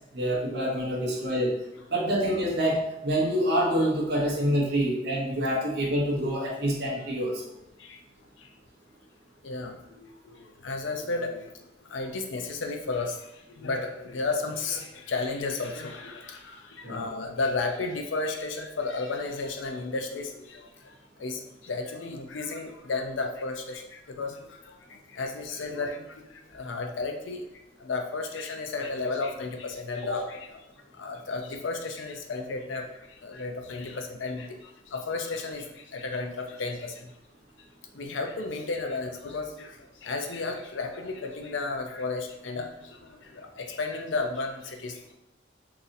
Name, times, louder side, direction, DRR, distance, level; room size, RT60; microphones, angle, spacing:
voice 1, 0.1-1.5 1.9-7.4 16.8-17.0, equal, 60° right, -4 dB, 0.8 m, -26 dB
voice 2, 9.4-11.5 11.9-20.7 21.2-27.4 27.8-30.6 31.0-32.8 33.2-37.1 37.9-42.7 43.3-45.1, left 3 dB, 75° left, 4 dB, 0.5 m, -33 dB
3.9 x 2.7 x 2.6 m, 0.88 s
head